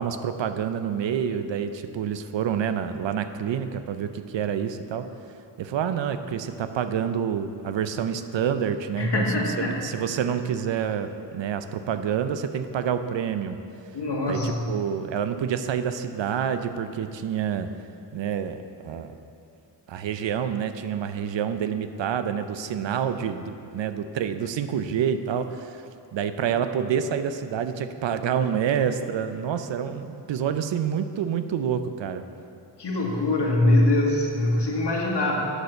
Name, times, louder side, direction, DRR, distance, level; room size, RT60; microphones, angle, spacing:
voice 1, 0.0-5.1 5.6-13.6 14.2-17.7 18.1-19.1 19.9-32.2, right 8 dB, 75° right, 10 dB, 0.6 m, -28 dB
voice 2, 9.0-9.8 13.9-14.7 32.8-35.5, left 1 dB, 65° left, -1 dB, 1.7 m, -23 dB
8.0 x 6.2 x 6.6 m, 2.6 s
cardioid pair, 65°, 45 cm